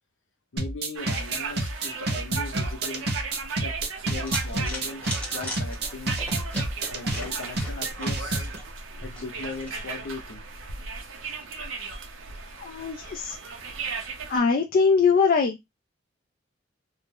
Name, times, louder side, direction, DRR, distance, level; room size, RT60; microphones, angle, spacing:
voice 1, 0.5-3.1 3.6-3.7 4.0-6.2 6.9-8.5 9.0-10.4, left 3 dB, 70° left, 0.8 m, -38 dB
sound 1, 0.6-8.6, right 2 dB, 55° right, 0.7 m, -29 dB
sound 2, 0.9-14.4, right 4 dB, 90° right, 0.6 m, -37 dB
sound 3, 4.2-9.8, equal, 5° left, 0.9 m, -39 dB
voice 2, 12.6-13.4 14.3-15.6, left 5 dB, 50° left, 0.4 m, -22 dB
2.5 x 2.1 x 3.5 m
head